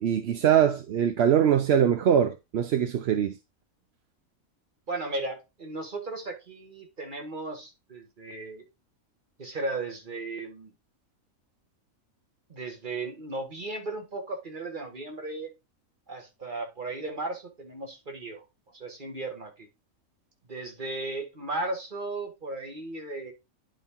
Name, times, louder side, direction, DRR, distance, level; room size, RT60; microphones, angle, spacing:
voice 1, 0.0-3.3, right 9 dB, 60° right, 0.8 m, -22 dB
voice 2, 4.9-8.7 9.4-10.7 12.5-15.5 16.1-18.4 18.7-19.7 20.5-23.3, right 2 dB, 35° right, 1.8 m, -35 dB
10.5 x 4.3 x 3.7 m
omnidirectional pair, 1.5 m